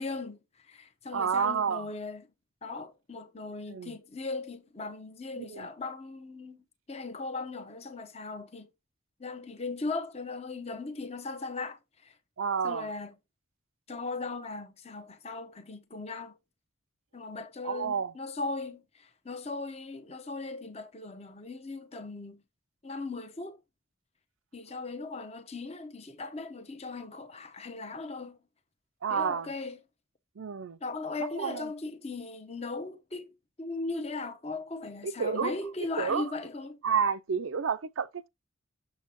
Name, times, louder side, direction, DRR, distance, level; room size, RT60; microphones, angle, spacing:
voice 1, 0.0-2.3 2.6-8.7 9.2-12.2 12.6-13.2 13.9-16.4 17.1-22.4 22.8-23.6 24.5-28.4 29.1-29.8 30.8-33.3 33.6-36.8, left 3 dB, 30° left, 0.9 m, -38 dB
voice 2, 1.1-1.8 3.7-3.9 5.4-5.7 12.4-12.9 17.6-18.1 29.0-29.5 30.4-30.8 31.4-31.7 35.0-35.5 36.0-36.2 36.8-38.3, right 6 dB, 75° right, 0.5 m, -30 dB
6.9 x 6.3 x 3.0 m
head